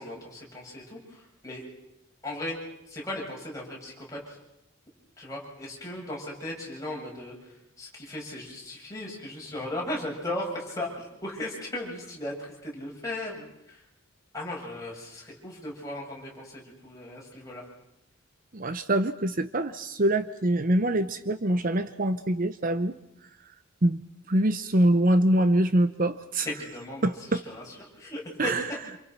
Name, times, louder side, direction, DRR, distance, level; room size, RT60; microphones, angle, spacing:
voice 1, 0.0-1.6 2.2-2.6 2.9-4.4 5.2-13.8 14.3-17.6 26.4-27.6 28.0-28.5, left 1 dB, 15° left, -3 dB, 7.9 m, -37 dB
voice 2, 18.5-22.9 23.8-24.0 24.3-26.5 27.0-27.4 28.4-28.7, right 1 dB, 40° right, 11 dB, 0.9 m, -24 dB
28.0 x 27.5 x 6.1 m, 0.85 s
head